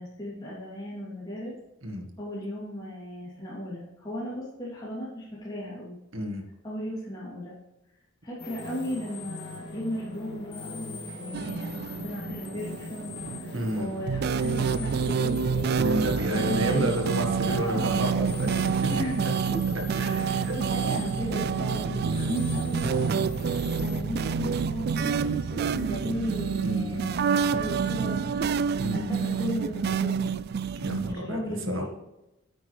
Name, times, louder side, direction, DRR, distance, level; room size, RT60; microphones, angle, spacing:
voice 1, 0.0-1.5 2.2-6.0 6.6-7.6 8.2-15.9 16.3-17.0 17.4-18.0 18.9-19.2 20.2-23.2 23.8-28.4 28.9-30.4 31.0-31.9, equal, 20° left, -10 dB, 3.2 m, -36 dB
voice 2, 6.1-6.4 13.5-13.9 15.7-18.5 20.0-20.5 21.9-22.2 26.6-27.1 28.8-29.1 30.8-31.9, equal, 65° right, 3 dB, 1.8 m, -31 dB
sound 1, 8.4-24.0, left 2 dB, 50° left, 2.1 m, -41 dB
sound 2, 11.3-31.1, right 6 dB, 45° right, 0.3 m, -28 dB
9.1 x 8.8 x 3.4 m, 0.95 s
head